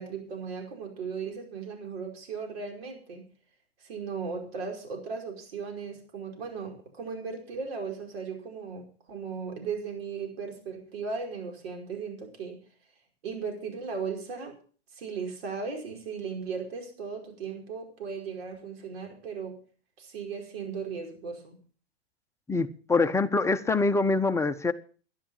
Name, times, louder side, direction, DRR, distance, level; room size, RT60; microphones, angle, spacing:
voice 1, 0.0-3.3 3.8-12.6 13.2-14.5 14.9-19.6 20.0-21.6, right 5 dB, 65° right, 5.2 m, -37 dB
voice 2, 22.5-24.7, left 3 dB, 10° left, 0.8 m, -25 dB
12.5 x 11.5 x 5.6 m
hypercardioid pair, 110°, 32 cm